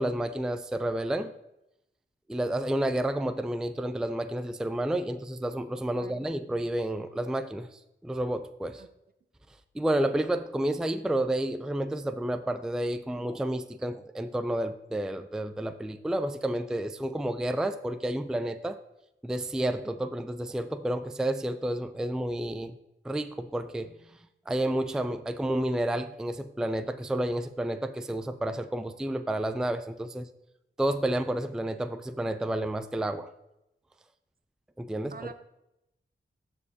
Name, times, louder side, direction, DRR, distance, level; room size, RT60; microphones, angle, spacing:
voice 1, 0.0-1.3 2.3-8.8 9.7-18.8 19.2-22.8 23.0-23.9 24.5-30.3 30.8-33.3 34.8-35.1, right 1 dB, 5° right, 10 dB, 0.4 m, -30 dB
voice 2, 5.9-6.3 8.8-8.9 35.1-35.3, right 4 dB, 50° right, 10 dB, 0.6 m, -44 dB
13.5 x 4.5 x 2.7 m, 0.86 s
cardioid pair, 60°, 20 cm